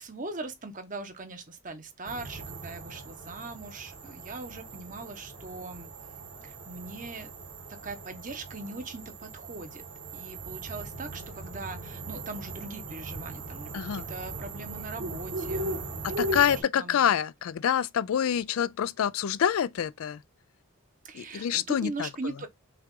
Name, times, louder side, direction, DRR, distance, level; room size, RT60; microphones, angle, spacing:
voice 1, 0.0-5.9 6.4-7.3 7.7-9.8 10.1-17.1 21.0-22.5, right 2 dB, 35° right, 0.8 m, -40 dB
sound 1, 2.0-16.6, right 2 dB, 60° right, 1.7 m, -39 dB
voice 2, 16.0-20.2 21.1-22.1, left 9 dB, 70° left, 0.3 m, -27 dB
5.7 x 2.4 x 3.7 m
head